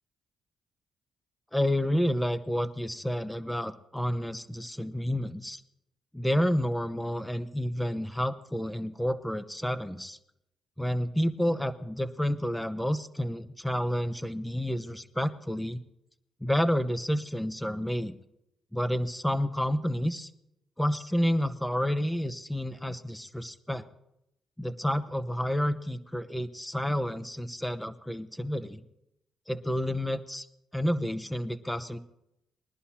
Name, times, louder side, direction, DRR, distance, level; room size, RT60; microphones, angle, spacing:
voice 1, 1.5-5.6 6.1-10.2 10.8-15.8 16.4-18.2 18.7-20.3 20.8-23.8 24.6-28.8 29.5-30.5 30.7-32.0, equal, 5° left, 11 dB, 0.7 m, -30 dB
21.5 x 11.0 x 2.9 m, 0.83 s
cardioid pair, 90°, 0 cm